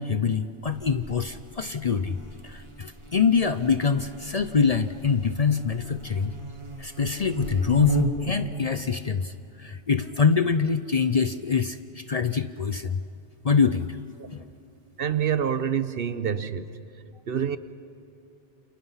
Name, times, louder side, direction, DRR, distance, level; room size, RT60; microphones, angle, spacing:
voice 1, 0.0-2.2 2.4-6.3 6.8-9.3 9.6-13.0 13.4-13.9 14.3-14.4, left 5 dB, 45° left, 11 dB, 0.6 m, -24 dB
Buzz, 0.6-8.4, right 1 dB, 25° right, 1.9 m, -35 dB
voice 2, 15.0-16.8 17.3-17.6, right 8 dB, 60° right, 13 dB, 1.0 m, -27 dB
29.0 x 27.5 x 5.7 m, 2.9 s
omnidirectional pair, 1.1 m